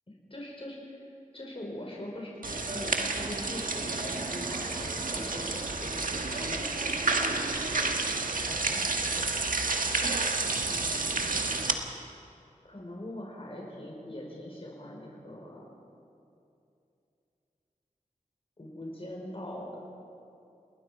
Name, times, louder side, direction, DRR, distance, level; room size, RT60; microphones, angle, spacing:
voice 1, 0.3-1.0 1.3-7.9 8.3-9.5 10.6-11.5 12.6-15.7 18.6-19.8, left 1 dB, 45° left, -2 dB, 4.9 m, -43 dB
sound 1, 2.4-11.7, right 3 dB, 80° right, 1.6 m, -30 dB
30.0 x 19.5 x 5.1 m, 2.6 s
wide cardioid pair, 55°, 14 cm